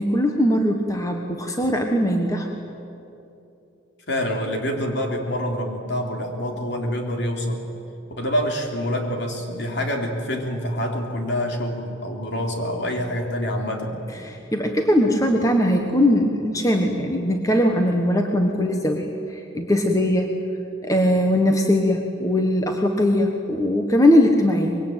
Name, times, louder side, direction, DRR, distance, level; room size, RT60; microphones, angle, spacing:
voice 1, 0.0-2.5 14.2-20.4 20.8-24.8, left 1 dB, 15° left, 3 dB, 1.3 m, -20 dB
voice 2, 4.1-7.6 8.2-14.0, equal, 55° left, 2 dB, 3.6 m, -26 dB
24.5 x 22.0 x 9.1 m, 2.9 s
head